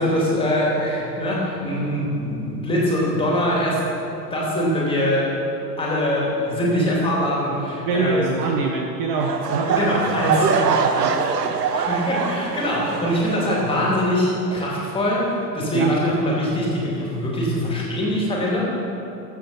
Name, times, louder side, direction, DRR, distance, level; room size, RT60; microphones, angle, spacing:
voice 1, 0.0-5.3 5.8-8.4 9.7-10.5 11.7-18.7, equal, 10° left, -4 dB, 2.4 m, -23 dB
voice 2, 7.9-10.0 10.3-11.3 15.7-15.9, right 4 dB, 35° right, 2 dB, 0.7 m, -24 dB
sound 1, 9.2-14.2 14.5-14.8 15.4-15.5, right 5 dB, 70° right, 0.8 m, -24 dB
13.0 x 6.9 x 4.1 m, 2.9 s
figure-of-eight pair, 95°, 50 cm